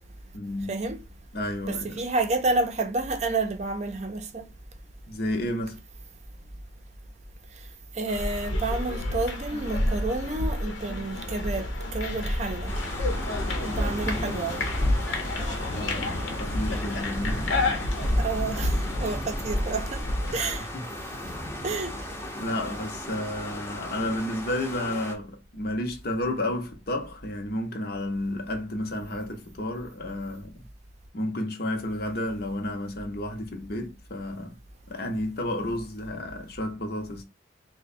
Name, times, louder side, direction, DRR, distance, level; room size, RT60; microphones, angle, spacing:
voice 1, 0.3-0.8 1.3-2.0 5.1-5.8 13.4-13.6 13.8-14.5 15.6-17.5 20.3-20.9 21.1-21.4 22.3-30.7 31.1-34.6 34.9-37.2, left 1 dB, 55° left, 0.8 m, -32 dB
voice 2, 1.7-4.4 7.9-12.8 13.6-14.7 18.2-20.0 20.3-20.7 21.6-21.9, right 3 dB, 35° right, 0.5 m, -29 dB
sound 1, 8.1-20.6, left 1 dB, 90° left, 0.9 m, -29 dB
sound 2, 12.7-25.1, left 1 dB, 15° left, 0.7 m, -37 dB
3.0 x 2.2 x 4.2 m
head